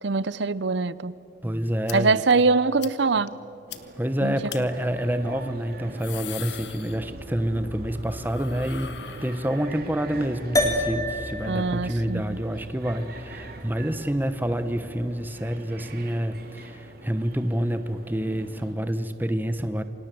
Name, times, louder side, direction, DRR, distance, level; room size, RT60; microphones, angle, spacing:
voice 1, 0.0-1.1 1.9-3.4 4.2-4.3 11.5-12.4, right 4 dB, 65° right, 18 dB, 0.7 m, -23 dB
voice 2, 1.4-2.2 4.0-8.9 9.2-19.8, equal, 10° right, 10 dB, 1.0 m, -28 dB
sound 1, 1.9-2.0 2.3-2.4 2.8-2.9 3.3-3.4 3.7-3.8 4.5-4.6 5.7-7.4 7.7-9.9, left 10 dB, 60° left, 1.4 m, -40 dB
sound 2, 3.7-18.7, right 1 dB, 50° right, 2.7 m, -43 dB
sound 3, 10.6-15.1, left 1 dB, 15° left, 2.3 m, -30 dB
29.0 x 25.0 x 7.8 m, 2.9 s
head